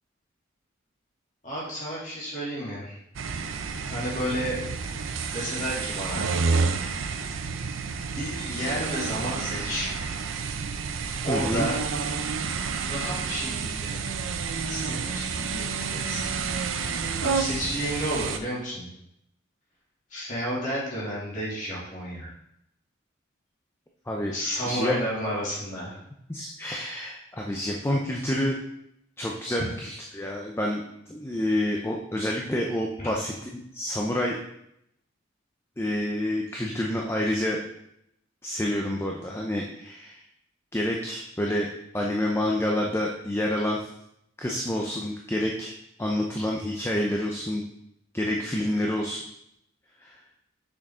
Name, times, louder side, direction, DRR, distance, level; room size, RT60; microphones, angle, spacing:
voice 1, 1.4-3.0 3.9-4.6 5.3-6.3 8.2-9.9 11.2-11.8 12.8-14.0 14.7-16.2 17.2-18.9 20.1-22.3 24.3-26.0 29.6-29.7, equal, 40° left, -7 dB, 2.6 m, -31 dB
sound 1, 3.1-18.4, right 5 dB, 75° right, 0.5 m, -30 dB
voice 2, 11.3-11.7 24.1-24.3 24.6-25.0 26.3-28.6 29.2-30.8 31.1-33.3 33.7-34.4 35.8-37.6 38.4-40.2 40.7-41.7 41.9-43.8 44.4-45.7 46.0-47.6 48.1-49.2 50.0-50.1, left 1 dB, 10° left, -1 dB, 0.5 m, -28 dB
6.4 x 6.2 x 3.6 m, 0.79 s
head